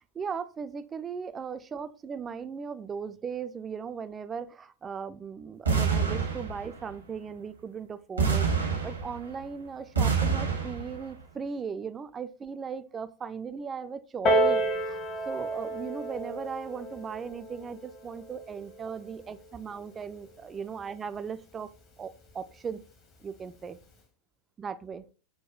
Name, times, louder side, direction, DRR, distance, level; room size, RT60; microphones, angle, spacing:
voice 1, 0.1-15.0 15.3-21.7 22.0-22.8 23.2-23.8 24.6-25.0, right 6 dB, 20° right, 0.3 m, -38 dB
sound 1, 5.6-6.9 8.2-9.4 9.9-11.1, right 6 dB, 75° right, 0.9 m, -27 dB
Piano, 14.2-19.4 20.3-20.4, right 1 dB, 35° left, 0.9 m, -30 dB
6.4 x 2.2 x 2.3 m
figure-of-eight pair, 90°, 0 cm